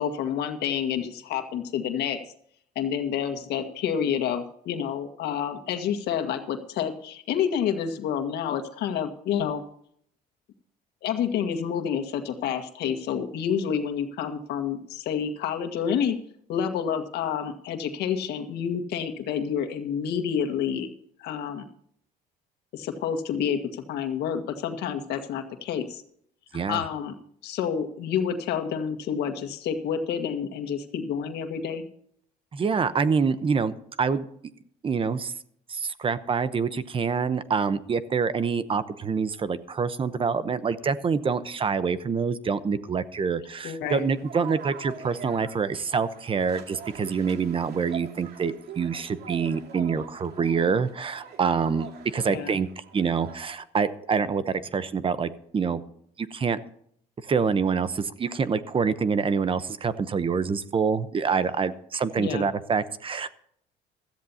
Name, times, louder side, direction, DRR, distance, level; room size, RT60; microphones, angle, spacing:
voice 1, 0.0-2.2 2.8-9.6 11.0-16.2 16.5-20.9 21.2-21.6 22.7-26.0 26.7-27.1 27.4-31.8 43.6-44.1 52.3-52.5 62.2-62.5, left 8 dB, 80° left, 6 dB, 1.8 m, -29 dB
voice 2, 26.5-26.8 32.5-34.2 34.8-35.3 35.7-51.9 52.1-55.8 56.2-56.6 57.2-63.3, right 5 dB, 30° right, 14 dB, 0.9 m, -26 dB
sound 1, 43.8-53.6, right 7 dB, 70° right, 2.4 m, -44 dB
16.5 x 13.5 x 2.8 m, 0.65 s
cardioid pair, 110°, 17 cm